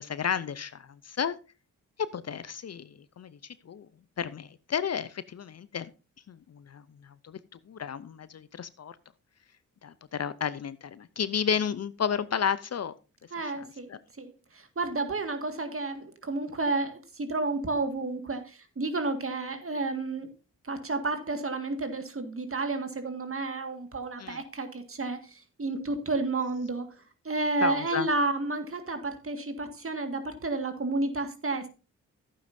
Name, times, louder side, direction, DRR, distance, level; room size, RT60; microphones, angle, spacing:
voice 1, 0.0-1.4 2.1-3.9 4.2-5.9 6.3-7.4 7.7-9.0 9.8-12.9 13.4-14.0 24.2-24.4 27.6-28.1, left 7 dB, 45° left, 16 dB, 0.6 m, -32 dB
voice 2, 13.3-13.9 14.2-20.3 20.6-26.9 27.3-31.7, right 3 dB, 40° right, 7 dB, 1.9 m, -31 dB
11.5 x 9.1 x 2.7 m, 0.32 s
supercardioid pair, 40°, 35 cm